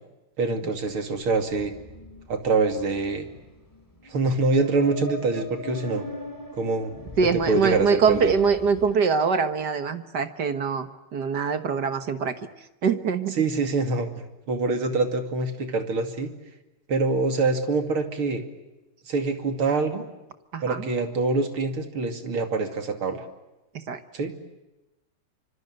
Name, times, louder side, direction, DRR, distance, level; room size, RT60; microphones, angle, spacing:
voice 1, 0.4-1.7 2.3-3.3 4.1-6.0 6.6-6.9 7.5-8.3 13.4-16.3 16.9-18.5 19.1-20.1 20.6-23.2 24.1-24.3, right 3 dB, 80° right, 7 dB, 3.5 m, -25 dB
sound 1, 0.7-8.9, left 1 dB, 10° left, 5.1 m, -42 dB
voice 2, 7.2-12.4 12.8-13.4 20.5-20.9 23.7-24.0, right 5 dB, 55° right, 11 dB, 1.9 m, -24 dB
26.0 x 25.5 x 7.9 m, 1.0 s
omnidirectional pair, 2.3 m